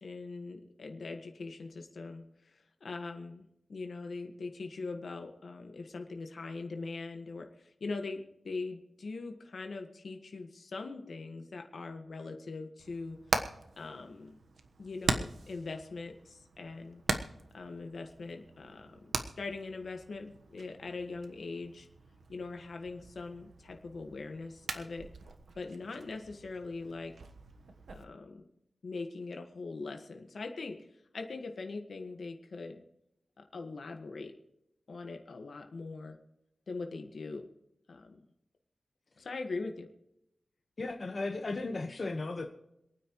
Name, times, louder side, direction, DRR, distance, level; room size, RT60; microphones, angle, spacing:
voice 1, 0.0-3.4 3.7-13.2 13.8-14.3 14.8-17.0 17.5-21.9 22.3-25.1 25.5-27.1 27.9-28.5 28.8-30.8 31.1-32.8 33.4-34.3 34.9-36.2 36.7-37.5 37.9-38.2 39.2-39.9, left 3 dB, 70° left, 4 dB, 1.6 m, -41 dB
Hammer, 12.8-28.0, right 4 dB, 85° right, 1.2 m, -41 dB
voice 2, 40.8-42.4, left 3 dB, 45° left, 2 dB, 1.3 m, -35 dB
27.0 x 9.4 x 3.1 m, 0.82 s
wide cardioid pair, 120°, 0 cm